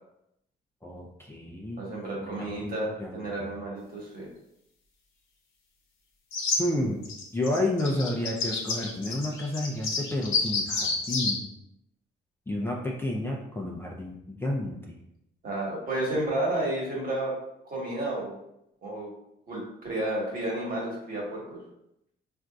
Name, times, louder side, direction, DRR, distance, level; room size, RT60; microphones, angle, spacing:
voice 1, 0.8-1.8 2.2-2.7 3.0-3.5 6.5-7.0 7.3-11.4 12.5-15.0, left 1 dB, 10° left, -2 dB, 0.5 m, -31 dB
voice 2, 1.8-4.3 15.4-17.3 17.6-18.3 18.8-19.1 19.5-21.6, right 1 dB, 45° right, -3 dB, 1.4 m, -31 dB
sound 1, 6.3-6.6 7.0-11.3, left 4 dB, 80° left, 0.7 m, -29 dB
4.2 x 2.5 x 2.4 m, 0.81 s
cardioid pair, 90°, 20 cm